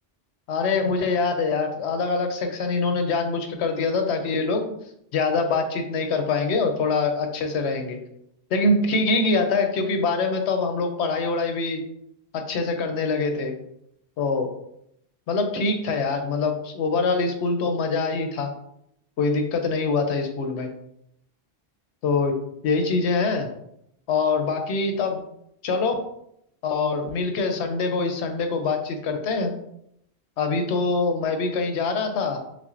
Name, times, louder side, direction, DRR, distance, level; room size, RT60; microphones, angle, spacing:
voice 1, 0.5-4.7 5.1-8.0 8.5-11.8 12.3-13.5 14.2-14.5 15.3-18.5 19.2-20.7 22.0-22.4 22.6-23.5 24.1-25.2 25.6-26.0 26.6-29.5 30.4-32.4, left 3 dB, 85° left, 5 dB, 0.9 m, -24 dB
5.8 x 2.0 x 2.5 m, 0.76 s
omnidirectional pair, 1.1 m